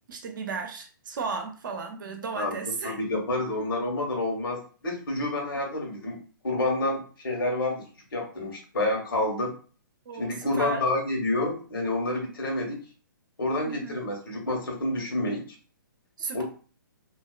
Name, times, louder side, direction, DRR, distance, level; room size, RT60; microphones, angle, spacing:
voice 1, 0.1-3.0 10.1-10.8 13.7-13.9 16.2-16.4, right 5 dB, 65° right, 4 dB, 0.6 m, -34 dB
voice 2, 2.8-6.2 6.4-7.8 8.1-9.5 10.2-12.8 13.4-15.4 16.3-16.4, left 2 dB, 80° left, 0 dB, 1.2 m, -28 dB
2.7 x 2.1 x 2.4 m, 0.39 s
hypercardioid pair, 135°, 11 cm